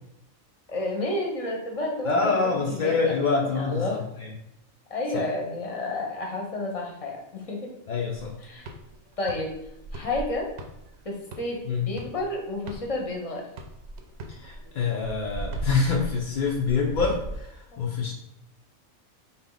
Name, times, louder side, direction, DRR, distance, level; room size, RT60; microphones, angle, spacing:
voice 1, 0.7-4.0 4.9-7.7 8.4-8.7 9.2-9.6 9.9-10.5 11.0-13.5 17.7-17.8, left 2 dB, 30° left, 1 dB, 0.7 m, -31 dB
voice 2, 2.1-4.0 5.1-5.2 7.9-8.3 11.7-11.9 14.3-18.1, left 4 dB, 65° left, -1 dB, 0.4 m, -26 dB
sound 1, 8.1-13.2 13.6-17.4, right 1 dB, 65° right, 0.7 m, -37 dB
4.2 x 2.8 x 3.8 m, 0.81 s
omnidirectional pair, 1.4 m